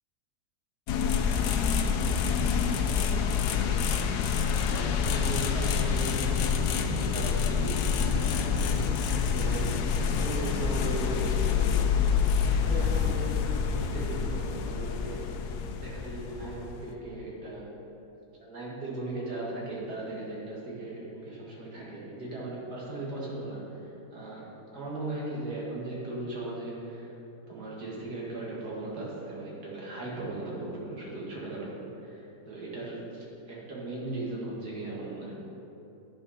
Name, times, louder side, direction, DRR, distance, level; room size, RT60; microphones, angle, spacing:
sound 1, 0.9-16.9, left 6 dB, 85° left, 1.2 m, -27 dB
voice 1, 2.5-2.9 3.5-4.1 4.6-11.9 12.3-15.4 15.8-17.8 18.4-27.1 27.5-35.3, right 2 dB, 75° right, -5 dB, 2.4 m, -38 dB
10.0 x 5.6 x 5.6 m, 3.0 s
omnidirectional pair, 1.7 m